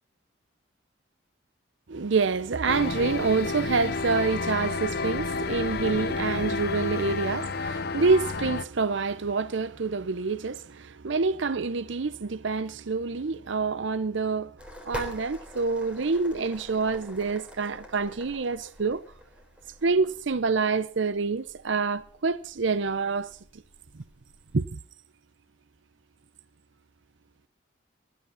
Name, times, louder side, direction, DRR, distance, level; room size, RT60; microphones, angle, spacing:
voice 1, 1.9-14.6 14.9-19.0 19.8-23.6 24.5-24.8, right 4 dB, 70° right, 0.7 m, -27 dB
sound 1, 2.7-8.6, left 4 dB, 50° left, 0.7 m, -30 dB
sound 2, 14.6-24.6, equal, 5° right, 3.6 m, -45 dB
20.5 x 12.0 x 5.7 m
head